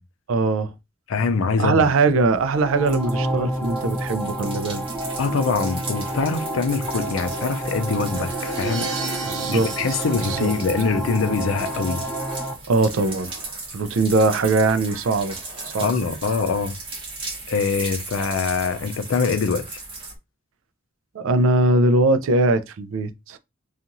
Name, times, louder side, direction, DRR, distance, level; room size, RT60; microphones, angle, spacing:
voice 1, 0.3-0.7 1.6-4.8 9.3-10.5 12.7-13.3 13.7-15.4 15.6-15.9 21.1-23.4, right 3 dB, 80° right, 0.4 m, -21 dB
voice 2, 1.1-1.8 5.2-8.9 9.5-12.0 15.8-16.8 17.5-19.8, left 4 dB, 80° left, 0.4 m, -24 dB
sound 1, 2.1-20.1, right 3 dB, 25° right, 0.9 m, -36 dB
sound 2, 2.5-12.5, right 1 dB, 5° left, 0.4 m, -29 dB
Crash cymbal, 8.2-11.2, right 2 dB, 60° right, 1.1 m, -34 dB
2.8 x 2.4 x 2.5 m
head